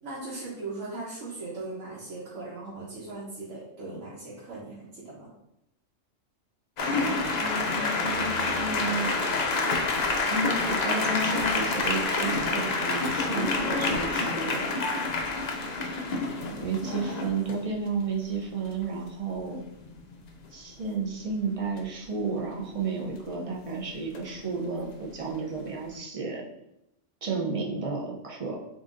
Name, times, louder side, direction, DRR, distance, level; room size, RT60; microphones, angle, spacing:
voice 1, 0.0-5.3, right 2 dB, 75° right, -6 dB, 1.3 m, -39 dB
sound 1, 6.8-17.5 19.5-19.6 19.9-20.1 24.1-24.4, left 3 dB, 70° left, 0.4 m, -28 dB
voice 2, 6.8-9.1 10.3-14.7 16.6-19.6 20.5-26.4 27.2-28.6, right 3 dB, 40° right, -1 dB, 0.5 m, -32 dB
3.9 x 3.8 x 2.5 m, 0.83 s
omnidirectional pair, 1.3 m